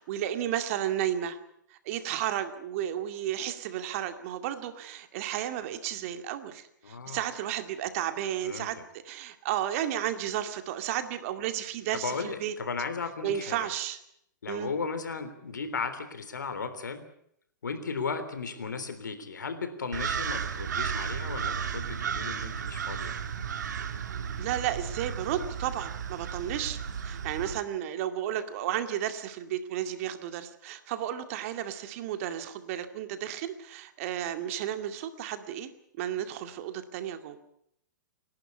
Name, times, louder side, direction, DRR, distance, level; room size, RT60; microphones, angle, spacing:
voice 1, 0.0-1.4 1.8-8.8 9.0-12.5 13.2-14.0 14.5-14.7 24.4-35.7 36.0-37.4, right 11 dB, 50° right, 8 dB, 2.3 m, -33 dB
voice 2, 6.8-7.2 8.4-8.8 12.0-13.7 14.4-17.0 17.6-23.2, left 5 dB, 80° left, 9 dB, 3.5 m, -35 dB
sound 1, 19.9-27.6, right 7 dB, 70° right, 2.0 m, -34 dB
28.5 x 12.0 x 9.6 m, 0.73 s
hypercardioid pair, 115°, 10 cm